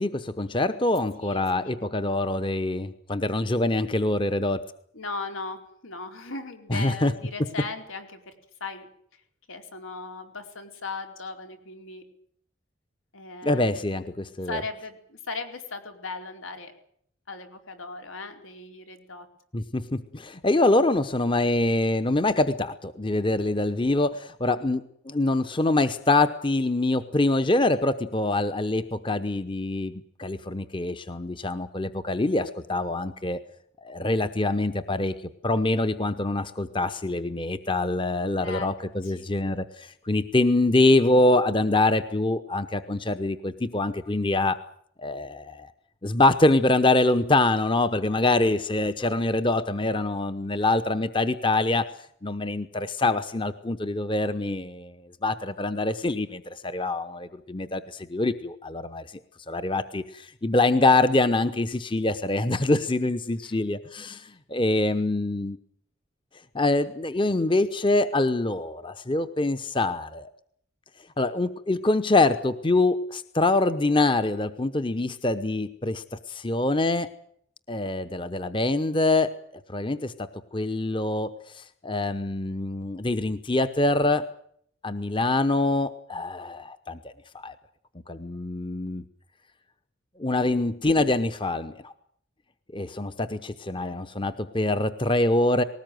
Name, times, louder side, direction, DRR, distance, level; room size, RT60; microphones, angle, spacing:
voice 1, 0.0-4.6 6.7-7.1 13.4-14.6 19.5-29.9 30.2-33.4 33.8-35.1 35.4-44.6 45.0-45.7 46.0-51.9 52.2-59.0 59.5-65.6 66.5-70.3 71.2-77.1 77.7-79.3 79.7-80.3 80.5-84.2 84.8-87.5 88.1-89.0 90.2-91.9 92.7-95.6, left 2 dB, 25° left, 11 dB, 0.9 m, -25 dB
voice 2, 1.2-1.8 4.9-8.3 8.6-8.9 9.5-12.0 13.1-13.7 14.4-16.7 17.3-19.3 38.4-38.7 39.0-39.2 63.4-63.6 93.7-94.0, left 3 dB, 85° left, 5 dB, 4.5 m, -37 dB
20.0 x 18.5 x 9.2 m, 0.66 s
head